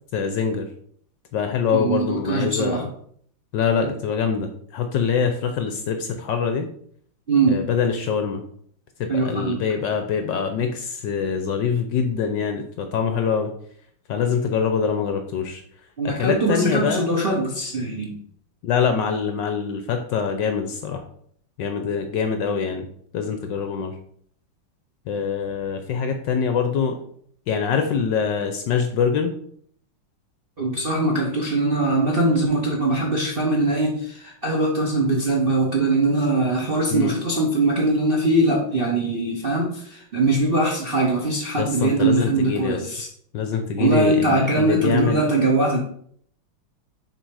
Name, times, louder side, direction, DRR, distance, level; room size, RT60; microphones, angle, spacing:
voice 1, 0.1-0.7 1.3-2.9 3.5-6.7 7.5-8.4 9.0-13.5 14.1-15.6 16.0-17.1 18.6-21.0 21.6-22.9 23.1-24.0 25.1-27.0 27.5-29.3 36.9-37.1 41.6-42.8 43.3-45.2, left 6 dB, 70° left, 6 dB, 1.1 m, -24 dB
voice 2, 1.7-2.9 7.3-7.6 9.1-9.6 16.0-18.2 30.6-43.1 43.8-45.8, right 2 dB, 45° right, -2 dB, 0.7 m, -21 dB
6.7 x 4.0 x 4.7 m, 0.62 s
omnidirectional pair, 2.4 m